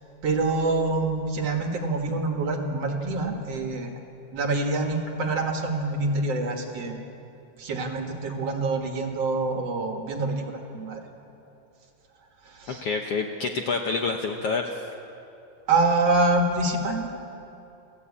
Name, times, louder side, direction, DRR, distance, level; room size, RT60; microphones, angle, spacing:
voice 1, 0.2-3.9 4.3-7.0 7.6-11.0 12.5-12.8 15.7-17.1, right 3 dB, 55° right, 3 dB, 2.4 m, -26 dB
voice 2, 12.7-14.8, left 4 dB, 65° left, 3 dB, 1.5 m, -28 dB
27.5 x 14.5 x 8.6 m, 2.9 s
omnidirectional pair, 3.8 m